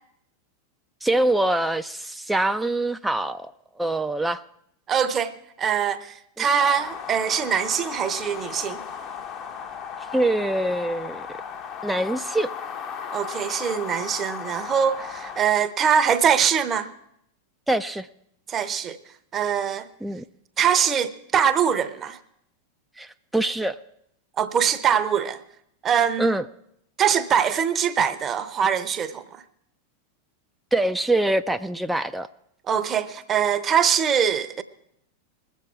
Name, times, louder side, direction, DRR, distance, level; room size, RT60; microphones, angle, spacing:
voice 1, 1.0-3.5 3.8-4.4 6.4-6.5 10.1-11.3 11.8-12.5 17.7-18.1 20.0-20.2 23.0-23.8 26.2-26.4 30.7-32.3, right 1 dB, 5° right, 0.4 m, -24 dB
voice 2, 4.9-8.8 13.1-16.9 18.5-19.0 19.3-19.9 20.6-22.2 24.4-25.4 25.8-26.4 27.0-29.2 32.7-34.6, right 7 dB, 25° right, 0.8 m, -23 dB
sound 1, 6.6-15.4, left 7 dB, 30° left, 0.7 m, -36 dB
21.0 x 7.3 x 4.6 m
figure-of-eight pair, 90°, 0 cm